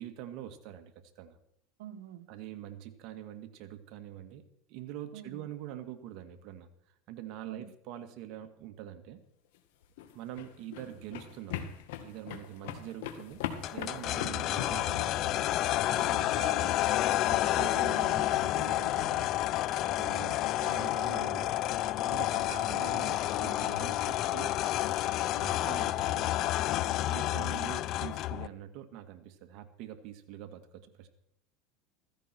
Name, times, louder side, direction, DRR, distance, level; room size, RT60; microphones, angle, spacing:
voice 1, 0.0-1.4 2.3-4.4 4.7-6.7 7.1-9.2 10.1-11.6 12.0-13.4 13.7-15.5 15.9-16.3 17.2-19.3 19.8-24.5 25.3-26.3 27.1-31.1, right 11 dB, 60° right, 7 dB, 2.0 m, -44 dB
voice 2, 1.8-2.3 5.1-5.4 7.4-7.7 10.8-11.0 14.2-14.5 16.4-16.7 20.0-20.3 22.5-22.8 23.4-23.7 27.1-27.5, right 10 dB, 85° right, 6 dB, 1.6 m, -46 dB
sound 1, 9.8-15.5, left 10 dB, 80° left, 2.0 m, -40 dB
sound 2, 13.6-28.5, left 14 dB, 50° left, 0.6 m, -30 dB
15.5 x 15.0 x 4.6 m, 0.73 s
supercardioid pair, 115°, 0 cm